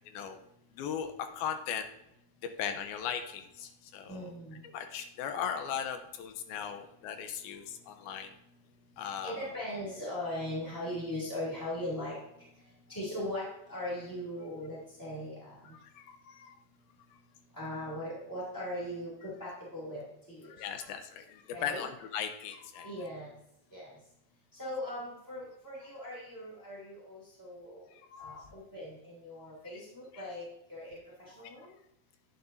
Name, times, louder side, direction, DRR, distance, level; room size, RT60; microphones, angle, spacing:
voice 1, 0.1-0.4 0.7-1.9 2.6-4.3 4.7-8.3 9.0-9.4 15.7-16.5 20.6-22.9 28.1-28.5 31.4-31.5, left 8 dB, 75° left, 7 dB, 2.5 m, -38 dB
voice 2, 4.1-4.6 9.0-12.2 12.9-15.6 17.5-20.5 21.5-21.9 22.8-23.3 23.7-24.0 24.5-27.8 28.2-31.7, left 1 dB, 10° left, -7 dB, 1.5 m, -39 dB
10.5 x 9.7 x 2.7 m, 0.83 s
omnidirectional pair, 4.6 m